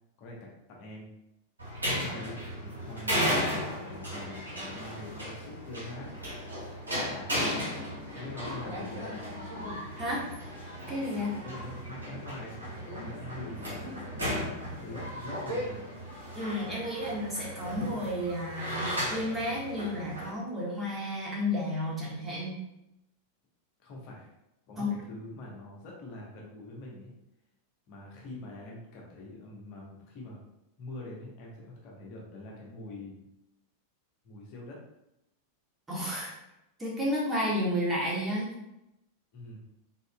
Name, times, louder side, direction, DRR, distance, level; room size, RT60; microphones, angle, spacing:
voice 1, 0.2-1.1 1.9-6.1 7.0-7.4 8.1-9.1 11.3-15.9 23.8-24.3 24.7-27.1 27.9-30.4 30.8-33.2 34.2-34.8 39.3-39.6, left 1 dB, 40° left, -2 dB, 1.0 m, -44 dB
sound 1, 1.6-20.3, equal, 80° right, 1.4 m, -35 dB
voice 2, 10.9-11.4 16.3-22.5 24.8-24.9 35.9-36.3 36.8-38.5, left 1 dB, 15° right, -5 dB, 1.4 m, -32 dB
4.1 x 3.8 x 2.3 m, 0.87 s
figure-of-eight pair, 90°, 0 cm